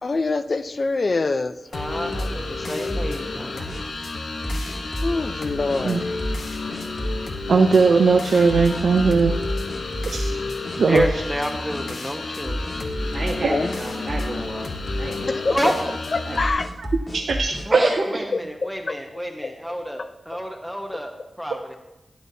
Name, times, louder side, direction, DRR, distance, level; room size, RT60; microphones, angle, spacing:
voice 1, 0.0-1.5 3.1-3.5 5.0-6.2 13.5-13.8 15.2-15.7 16.1-16.7 18.3-19.0 19.4-19.5 20.0-20.1 20.9-21.0, left 3 dB, 55° left, 10 dB, 0.6 m, -25 dB
sound 1, 1.7-16.5, left 3 dB, 85° left, 0.9 m, -31 dB
voice 2, 1.7-3.7 10.9-12.7 15.5-15.7 17.7-21.1 21.4-21.7, equal, ahead, 2 dB, 1.0 m, -28 dB
sound 2, 2.1-3.2 3.7-3.8 4.4-5.2 5.7-5.8 6.2-6.5 6.7-7.2 7.7-7.9 8.5-10.4 10.6-11.4 11.7-11.8 12.4-13.8 14.1-14.4 14.6-15.1 15.6-15.8 16.3-17.7, equal, 20° left, 1.8 m, -30 dB
voice 3, 7.5-9.3 10.1-10.3 10.8-11.0 17.1-17.5 21.5-21.6, right 4 dB, 85° right, 3 dB, 0.6 m, -18 dB
voice 4, 13.1-14.7 15.0-15.7 16.3-16.4 17.7-18.3, right 2 dB, 55° right, -2 dB, 1.6 m, -29 dB
12.0 x 9.3 x 2.8 m, 0.96 s
cardioid pair, 65°, 0 cm